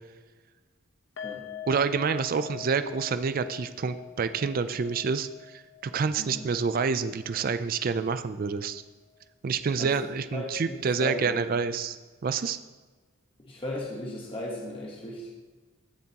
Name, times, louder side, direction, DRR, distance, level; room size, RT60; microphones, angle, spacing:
sound 1, 1.2-8.4 8.6-8.8 9.2-9.3, left 9 dB, 60° left, 1.0 m, -45 dB
voice 1, 1.7-8.8 9.4-12.0 12.2-12.6, right 5 dB, 40° right, 11 dB, 0.3 m, -28 dB
voice 2, 10.3-11.4 13.4-15.3, left 1 dB, 25° left, -3 dB, 1.2 m, -36 dB
16.0 x 7.3 x 2.9 m, 1.3 s
head